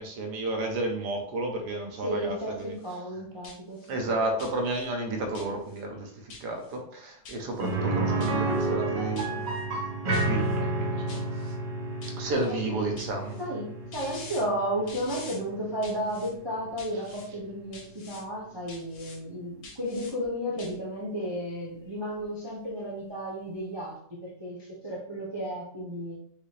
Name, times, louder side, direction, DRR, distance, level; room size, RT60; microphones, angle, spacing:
voice 1, 0.0-2.7 3.9-9.5 9.7-9.9 10.2-11.6 12.2-13.4, right 2 dB, 80° right, 2 dB, 1.5 m, -32 dB
voice 2, 2.0-3.9 12.4-12.6 13.4-13.7 13.9-26.2, equal, 25° right, -5 dB, 0.6 m, -33 dB
sound 1, 2.6-3.0 3.4-3.9 4.4-4.9 5.3-5.8 6.3-6.8 7.2-7.7 8.2-8.7 9.2-9.6 10.1-10.6 11.1-11.5 12.0-12.5 13.0-13.4 13.9-14.4 14.9-15.4 15.8-16.3 16.8-17.3 17.7-18.2 18.7-19.2 19.6-20.1 20.6-20.7, left 3 dB, 70° left, 1.4 m, -46 dB
sound 2, 7.6-17.4 17.7-17.8 20.2-20.3, right 2 dB, 60° right, 1.7 m, -31 dB
5.2 x 2.8 x 3.2 m, 0.64 s
omnidirectional pair, 1.7 m